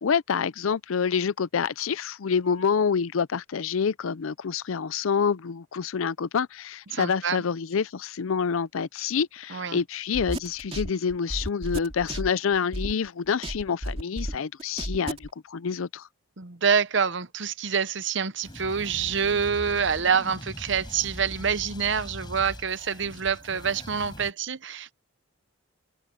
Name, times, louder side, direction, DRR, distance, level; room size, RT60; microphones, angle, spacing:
voice 1, 0.0-16.1, left 6 dB, 75° left, 0.5 m, -27 dB
voice 2, 6.9-7.4 9.5-9.8 16.4-24.9, right 6 dB, 60° right, 0.9 m, -26 dB
sound 1, 10.1-13.1 13.4-15.3, right 1 dB, 30° right, 3.0 m, -32 dB
sound 2, 18.4-24.3, equal, 20° left, 7.8 m, -41 dB
head